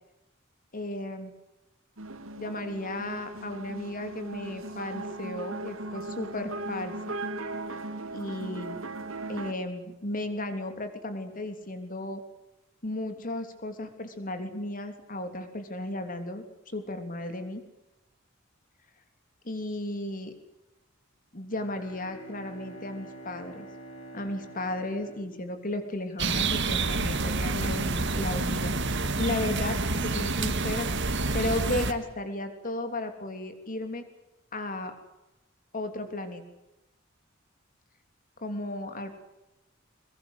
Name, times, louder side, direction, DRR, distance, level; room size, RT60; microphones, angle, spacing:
voice 1, 0.7-1.3 2.4-7.1 8.1-8.8 9.3-12.2 12.8-17.6 19.4-20.3 21.3-23.7 24.1-30.9 31.3-34.0 34.5-34.9 35.7-36.4 38.4-39.2, left 1 dB, 45° left, 7 dB, 3.4 m, -34 dB
sound 1, 2.0-9.5, right 2 dB, 80° right, 2.6 m, -38 dB
Bowed string instrument, 21.4-26.3, right 2 dB, 75° left, 5.9 m, -47 dB
sound 2, 26.2-31.9, right 3 dB, 60° right, 2.0 m, -28 dB
22.5 x 22.5 x 8.0 m, 0.97 s
head